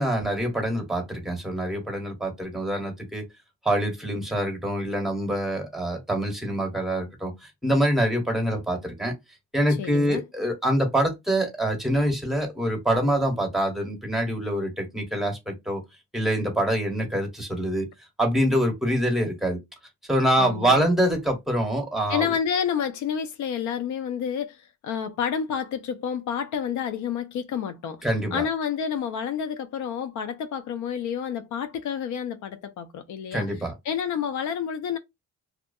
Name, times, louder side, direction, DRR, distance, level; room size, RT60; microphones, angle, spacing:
voice 1, 0.0-3.2 3.6-7.3 7.6-9.1 9.5-15.8 16.1-17.9 18.2-19.6 20.1-22.4 28.0-28.4 33.3-33.7, right 1 dB, ahead, 1.2 m, -25 dB
voice 2, 9.8-10.2 20.4-20.9 22.1-28.1 28.3-33.5 33.9-35.0, left 8 dB, 75° left, 0.5 m, -29 dB
2.4 x 2.3 x 2.6 m
cardioid pair, 90°, 30 cm